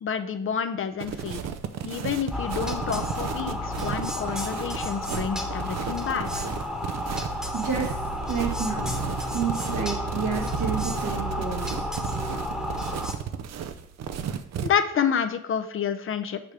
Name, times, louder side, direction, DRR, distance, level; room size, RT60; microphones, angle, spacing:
voice 1, 0.0-1.4 1.8-6.5 14.6-16.4, left 7 dB, 45° left, 9 dB, 0.6 m, -29 dB
sound 1, 1.0-14.7, right 8 dB, 60° right, 0.6 m, -34 dB
sound 2, 2.3-13.1, equal, ahead, 1.1 m, -31 dB
voice 2, 7.5-8.9 9.2-11.9, right 6 dB, 80° right, -1 dB, 1.8 m, -30 dB
7.4 x 3.3 x 4.7 m, 0.72 s
cardioid pair, 90°, 30 cm